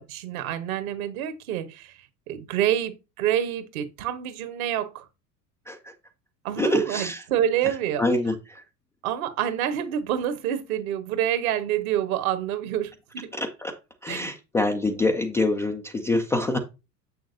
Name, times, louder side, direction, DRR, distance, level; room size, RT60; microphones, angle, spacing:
voice 1, 0.0-2.0 2.3-5.1 6.4-8.0 9.0-13.3 14.1-14.2, right 10 dB, 55° right, 1.3 m, -27 dB
voice 2, 6.6-7.2 8.0-8.6 13.3-13.8 14.0-16.6, left 2 dB, 5° left, 0.3 m, -26 dB
7.8 x 6.4 x 2.7 m
figure-of-eight pair, 80°, 50 cm